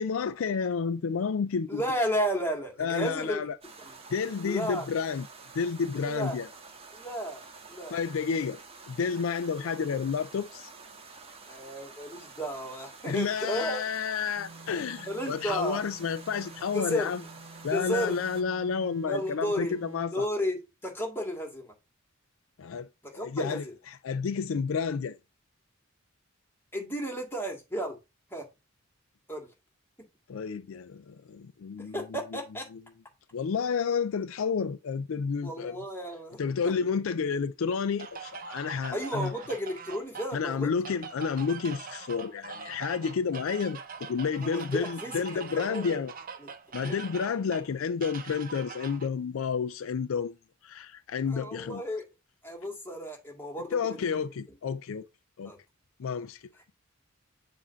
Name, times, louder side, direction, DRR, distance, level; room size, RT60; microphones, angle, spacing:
voice 1, 0.0-1.8 2.8-3.6 4.1-5.3 5.5-6.5 7.9-8.6 8.9-10.7 13.1-17.2 17.6-20.3 22.6-25.2 30.3-32.4 32.7-32.8 33.3-35.8 36.4-39.3 40.3-46.1 46.7-50.4 50.6-51.8 53.7-55.0 55.4-55.5 56.0-56.4, left 6 dB, 70° left, 0.4 m, -30 dB
voice 2, 1.7-3.4 4.4-4.9 6.0-6.4 6.9-7.4 7.7-8.0 11.4-13.8 15.1-15.8 16.7-17.1 17.7-18.1 19.0-19.8 20.1-21.7 23.1-23.7 26.7-28.0 28.3-28.5 29.3-29.5 31.9-32.7 35.4-36.4 36.6-36.7 38.9-40.7 44.4-46.0 46.4-46.5 46.8-47.0 51.3-52.0 52.4-54.0 55.4-55.6, equal, 10° left, 1.9 m, -33 dB
sound 1, 3.6-18.4, right 4 dB, 30° right, 1.3 m, -49 dB
sound 2, 14.4-20.2, right 2 dB, 60° right, 1.1 m, -50 dB
sound 3, 38.0-49.1, right 5 dB, 45° right, 0.8 m, -43 dB
7.3 x 2.7 x 5.6 m
head